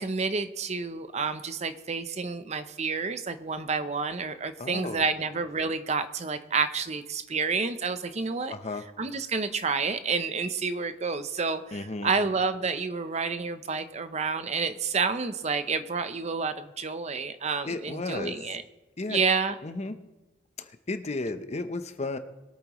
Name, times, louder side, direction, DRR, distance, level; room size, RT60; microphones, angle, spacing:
voice 1, 0.0-8.5 9.0-18.6 19.1-19.6, right 4 dB, 35° right, 10 dB, 0.6 m, -29 dB
voice 2, 4.6-5.0 8.5-8.8 11.7-12.1 17.6-18.4 19.0-19.2 19.6-19.9 20.9-22.2, left 2 dB, 35° left, 9 dB, 0.8 m, -33 dB
22.5 x 8.7 x 3.1 m, 1.1 s
head